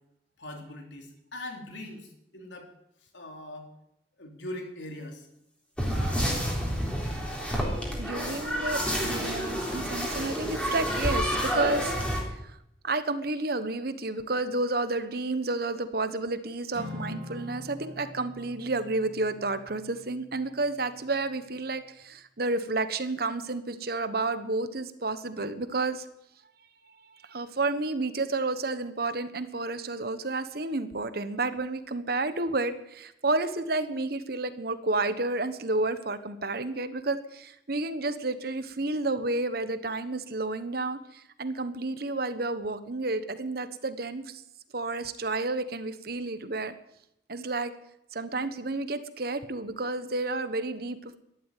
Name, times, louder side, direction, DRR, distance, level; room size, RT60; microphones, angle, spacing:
voice 1, 0.4-2.1 2.3-2.7 3.1-3.7 4.2-5.3, left 1 dB, 85° left, 3 dB, 3.6 m, -41 dB
sound 1, 5.8-12.2, equal, 5° left, 3.6 m, -29 dB
voice 2, 8.0-11.9 12.3-12.6 12.8-26.1 27.0-44.4 44.7-46.7 47.3-47.7 48.1-51.2, right 2 dB, 55° right, 11 dB, 1.2 m, -31 dB
Acoustic guitar / Strum, 16.7-21.2, left 2 dB, 35° right, 3.8 m, -44 dB
13.5 x 11.5 x 9.2 m, 0.80 s
head